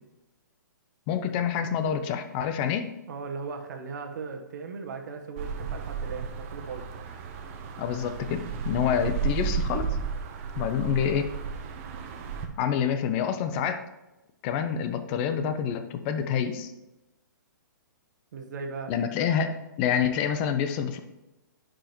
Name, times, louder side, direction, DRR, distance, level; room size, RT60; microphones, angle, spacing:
voice 1, 1.1-2.9 7.8-9.9 10.6-11.3 12.6-13.9 14.4-16.7 18.9-21.0, left 8 dB, 30° left, 9 dB, 0.6 m, -27 dB
voice 2, 3.1-6.8 18.3-18.9, right 4 dB, 60° right, 4 dB, 1.1 m, -37 dB
sound 1, 5.4-12.5, right 6 dB, 40° right, 0.9 m, -33 dB
10.5 x 5.0 x 3.0 m, 0.99 s
hypercardioid pair, 140°, 11 cm